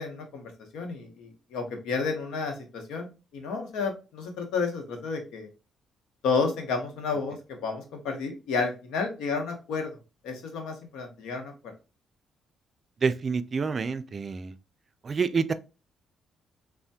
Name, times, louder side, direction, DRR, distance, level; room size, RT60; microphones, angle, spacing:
voice 1, 0.0-5.5 6.2-9.9 10.2-11.5, left 4 dB, 90° left, 0.8 m, -31 dB
voice 2, 13.0-14.5 15.0-15.5, right 5 dB, 40° right, 0.3 m, -27 dB
3.2 x 2.1 x 2.7 m
cardioid pair, 90°, 0 cm